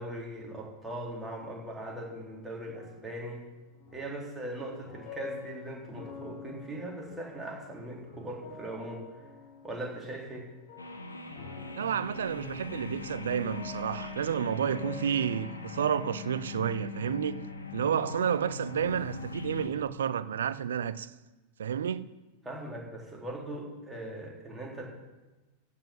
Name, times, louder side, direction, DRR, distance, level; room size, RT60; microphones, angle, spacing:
voice 1, 0.0-3.4 3.9-9.1 9.6-10.5 22.4-24.8, right 1 dB, 10° right, 3.3 m, -40 dB
sound 1, 2.2-19.0, left 4 dB, 50° left, 3.0 m, -49 dB
sound 2, 10.8-19.7, left 5 dB, 80° left, 1.4 m, -41 dB
voice 2, 11.8-17.4 17.7-21.1 21.6-22.1, right 8 dB, 65° right, 0.5 m, -30 dB
14.0 x 5.7 x 7.6 m
figure-of-eight pair, 90°, 0 cm